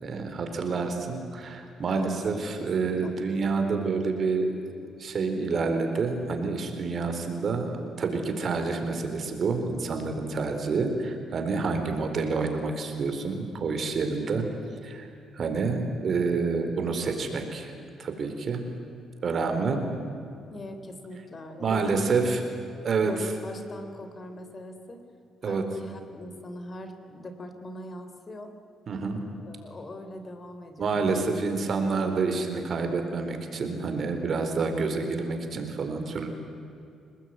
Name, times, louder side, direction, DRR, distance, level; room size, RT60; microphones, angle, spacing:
voice 1, 0.0-4.7 5.0-14.5 14.8-15.1 15.3-17.7 18.0-18.6 19.2-19.8 21.6-22.4 22.8-23.1 25.4-25.6 28.9-29.3 30.8-36.3, right 4 dB, 50° right, 5 dB, 4.3 m, -28 dB
voice 2, 2.6-3.1 20.5-22.4 23.0-25.0 25.4-28.5 29.4-31.4 31.8-31.9, left 1 dB, 35° left, 8 dB, 3.5 m, -41 dB
29.0 x 19.5 x 9.6 m, 2.6 s
cardioid pair, 90°, 0 cm